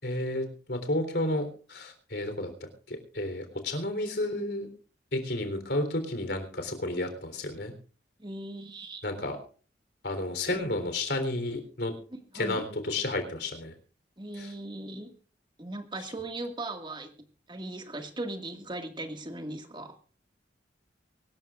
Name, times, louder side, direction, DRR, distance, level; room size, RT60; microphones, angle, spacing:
voice 1, 0.0-2.5 2.9-4.7 5.1-7.7 9.0-9.4 10.0-11.9 12.3-13.7 14.4-14.5, left 1 dB, 65° left, 7 dB, 3.7 m, -31 dB
voice 2, 8.2-9.0 12.1-12.6 14.2-15.1 15.6-17.1 17.5-20.0, right 2 dB, 25° right, 6 dB, 1.9 m, -38 dB
24.5 x 13.5 x 2.5 m, 0.39 s
head